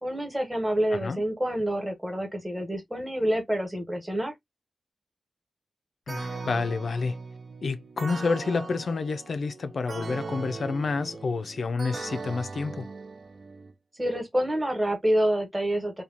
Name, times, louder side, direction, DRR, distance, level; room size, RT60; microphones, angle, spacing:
voice 1, 0.0-4.3 13.9-16.0, right 1 dB, 10° right, 1.1 m, -27 dB
voice 2, 0.9-1.2 6.1-7.2 7.6-12.9, left 4 dB, 60° left, 0.4 m, -29 dB
sound 1, 6.1-13.7, right 4 dB, 45° right, 0.5 m, -39 dB
3.0 x 2.3 x 2.4 m
wide cardioid pair, 130°, 0 cm